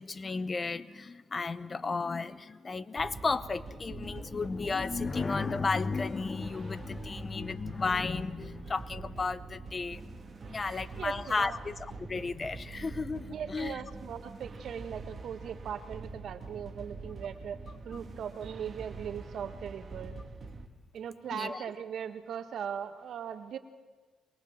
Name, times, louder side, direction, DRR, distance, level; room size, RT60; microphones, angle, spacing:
voice 1, 0.0-10.1 10.4-13.8 21.3-21.6, left 4 dB, 30° left, 17 dB, 0.7 m, -33 dB
sound 1, 3.0-20.7, right 3 dB, 40° right, 2.2 m, -45 dB
voice 2, 10.6-11.6 13.3-17.6 17.8-20.1 20.9-23.6, right 8 dB, 65° right, 9 dB, 1.7 m, -39 dB
22.5 x 21.5 x 7.4 m, 1.3 s
cardioid pair, 90°, 0 cm